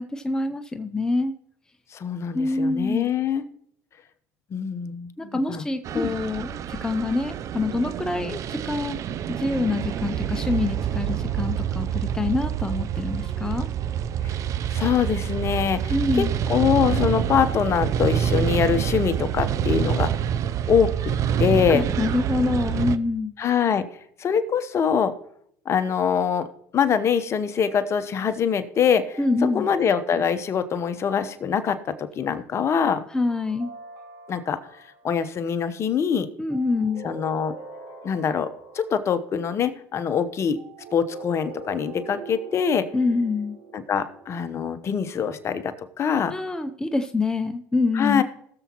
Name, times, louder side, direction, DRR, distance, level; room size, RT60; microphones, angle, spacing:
voice 1, 0.0-1.3 2.3-3.1 5.2-9.0 9.4-13.7 15.9-16.4 21.7-23.3 29.2-29.7 33.1-33.7 36.4-37.1 42.9-43.6 46.3-48.2, left 3 dB, 10° left, 8 dB, 0.6 m, -26 dB
voice 2, 1.9-3.4 4.5-5.6 5.9-6.1 14.2-14.3 14.7-20.1 20.7-21.1 21.4-21.9 23.4-23.9 24.2-25.1 25.7-26.5 26.7-29.2 29.5-33.0 34.3-34.6 35.0-36.3 37.0-37.6 38.0-38.5 38.7-40.6 40.9-42.9 43.7-46.3 47.9-48.2, left 7 dB, 40° left, 11 dB, 0.9 m, -24 dB
sound 1, 5.8-23.0, right 9 dB, 50° right, 0.5 m, -27 dB
sound 2, 29.1-31.6 33.3-35.1 36.5-39.2 40.6-45.1, right 4 dB, 70° right, 4.7 m, -43 dB
19.0 x 7.1 x 3.0 m, 0.70 s
supercardioid pair, 90°, 7 cm